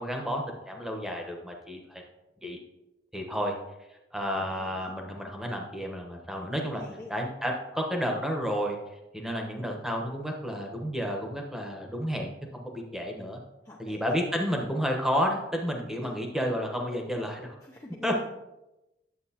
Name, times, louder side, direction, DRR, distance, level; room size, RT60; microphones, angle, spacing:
voice 1, 0.0-2.0 2.4-2.6 3.1-3.6 4.1-6.8 7.1-8.8 9.1-13.4 13.8-17.6 18.0-18.3, equal, ahead, 1 dB, 1.0 m, -31 dB
voice 2, 4.3-5.2 6.4-7.1 13.6-14.2 16.0-16.2 17.6-18.3, left 1 dB, 20° left, -3 dB, 0.6 m, -47 dB
9.5 x 7.4 x 2.9 m, 0.97 s
head